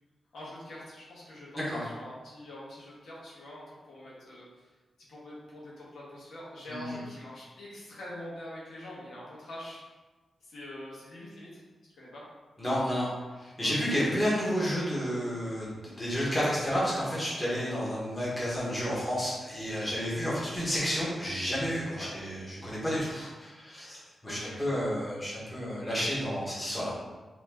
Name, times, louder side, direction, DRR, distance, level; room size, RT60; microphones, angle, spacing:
voice 1, 0.3-4.7 5.1-9.8 10.4-11.6 12.0-12.2 13.6-13.7 22.0-22.1 24.2-24.8, left 1 dB, 85° left, -7 dB, 1.2 m, -45 dB
voice 2, 6.7-7.0 12.6-13.1 13.4-26.9, equal, 10° left, -8 dB, 1.3 m, -31 dB
4.2 x 2.9 x 2.8 m, 1.3 s
wide cardioid pair, 125°, 0 cm